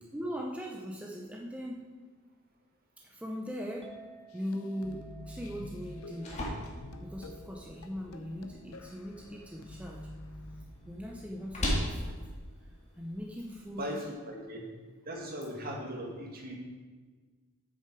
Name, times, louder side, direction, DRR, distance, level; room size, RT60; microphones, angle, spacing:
voice 1, 0.1-1.9 3.0-3.9 4.3-6.4 7.0-10.1 10.5-12.3 12.9-14.0, equal, 5° right, -1 dB, 0.6 m, -40 dB
Chink clink, 3.8-10.1, right 3 dB, 25° right, 1.3 m, -57 dB
sound 1, 4.3-10.7, left 1 dB, 85° left, 0.7 m, -48 dB
sound 2, 5.8-13.8, equal, 35° left, 1.7 m, -39 dB
voice 2, 13.8-14.6 15.1-16.5, equal, 45° right, -1 dB, 1.8 m, -38 dB
8.1 x 6.7 x 4.6 m, 1.4 s
head